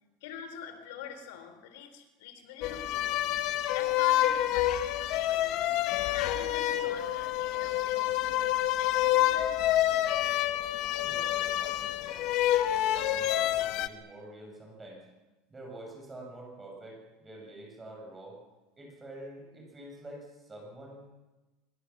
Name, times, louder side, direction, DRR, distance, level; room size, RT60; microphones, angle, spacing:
voice 1, 0.2-9.5, left 8 dB, 80° left, 9 dB, 3.8 m, -45 dB
sound 1, 2.6-13.9, left 13 dB, 50° left, 1.3 m, -28 dB
voice 2, 10.9-12.2 12.7-15.1 15.5-18.4 18.8-21.1, right 1 dB, 10° right, 0 dB, 7.6 m, -47 dB
25.0 x 24.5 x 7.4 m, 1.1 s
supercardioid pair, 160°, 0 cm